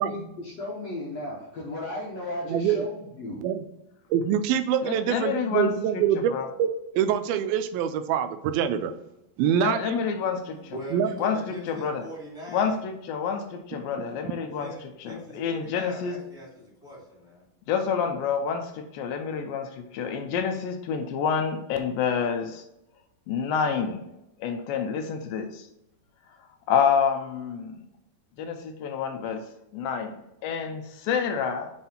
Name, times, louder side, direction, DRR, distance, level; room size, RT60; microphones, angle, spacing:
voice 1, 0.0-3.4, left 2 dB, 65° left, -4 dB, 1.8 m, -35 dB
voice 2, 2.5-2.9 3.4-3.6 4.1-6.3 6.6-6.7 6.9-8.9 9.4-10.0 10.9-11.1, right 9 dB, 85° right, 10 dB, 2.4 m, -25 dB
voice 3, 4.8-6.5 9.6-10.8 11.2-12.1 12.5-14.7 15.0-16.2 17.7-22.6 23.3-24.0 24.4-25.7 26.7-27.8 28.4-31.7, left 6 dB, 80° left, 6 dB, 2.3 m, -28 dB
voice 4, 10.1-12.8 14.5-17.4, equal, 20° right, -5 dB, 2.4 m, -41 dB
7.3 x 3.8 x 4.3 m, 0.86 s
omnidirectional pair, 4.3 m